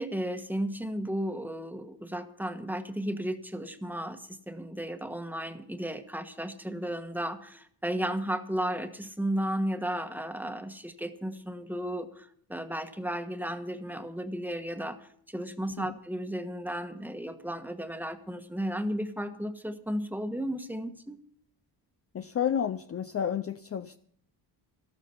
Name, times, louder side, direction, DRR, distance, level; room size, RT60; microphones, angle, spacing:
voice 1, 0.0-21.2, right 1 dB, 5° right, 7 dB, 1.3 m, -34 dB
voice 2, 22.1-24.0, left 8 dB, 35° left, 10 dB, 0.5 m, -31 dB
13.0 x 12.0 x 5.6 m, 0.62 s
cardioid pair, 90°, 43 cm